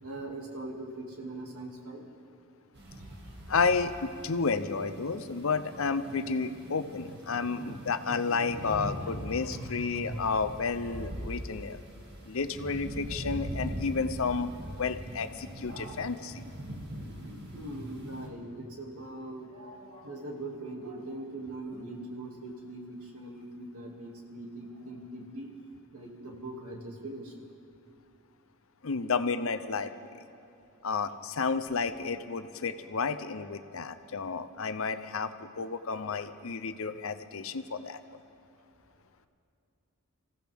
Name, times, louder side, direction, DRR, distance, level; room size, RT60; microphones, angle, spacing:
voice 1, 0.0-2.1 3.1-3.3 6.0-6.6 7.0-10.2 13.0-13.1 15.0-25.5 25.9-27.4, right 1 dB, 80° right, 0 dB, 2.4 m, -42 dB
sound 1, 2.7-18.3, right 1 dB, 45° right, 2.2 m, -43 dB
voice 2, 3.5-11.8 12.3-14.5 14.8-16.3 28.8-30.2 30.8-38.0, left 4 dB, 65° left, 10 dB, 0.7 m, -31 dB
25.5 x 15.5 x 3.5 m, 2.5 s
head